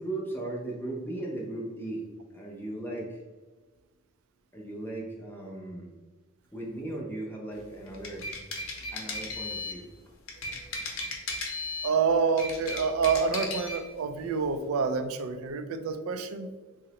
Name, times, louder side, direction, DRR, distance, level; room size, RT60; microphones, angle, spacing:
voice 1, 0.0-2.0 2.3-3.2 4.5-5.9 6.5-8.3 8.9-9.8 10.5-10.6, right 2 dB, 10° left, -2 dB, 0.6 m, -37 dB
sound 1, 7.9-9.8 10.3-12.0 12.3-13.8, left 2 dB, 75° left, 0.7 m, -35 dB
voice 2, 11.8-16.5, right 5 dB, 80° right, 9 dB, 0.3 m, -27 dB
3.7 x 2.0 x 2.8 m, 1.3 s
head